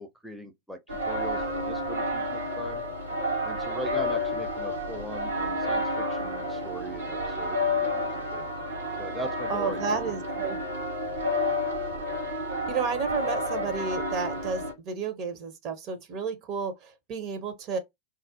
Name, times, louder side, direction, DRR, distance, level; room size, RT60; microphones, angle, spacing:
voice 1, 0.0-2.8 3.4-8.5 9.0-10.0, right 1 dB, ahead, 0.5 m, -40 dB
sound 1, 0.9-14.7, left 1 dB, 80° right, 0.9 m, -30 dB
voice 2, 9.5-10.6 12.7-17.8, right 5 dB, 45° right, 0.7 m, -32 dB
2.4 x 2.0 x 2.7 m
figure-of-eight pair, 90°, 0 cm